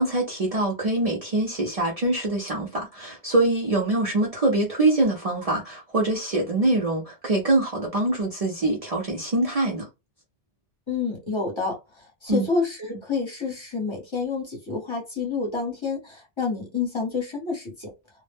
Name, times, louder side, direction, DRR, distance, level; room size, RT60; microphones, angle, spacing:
voice 1, 0.0-9.8 12.3-12.5, right 2 dB, 45° right, 0.6 m, -24 dB
voice 2, 10.9-17.9, left 4 dB, 30° left, 0.9 m, -29 dB
2.1 x 2.0 x 3.3 m
omnidirectional pair, 1.1 m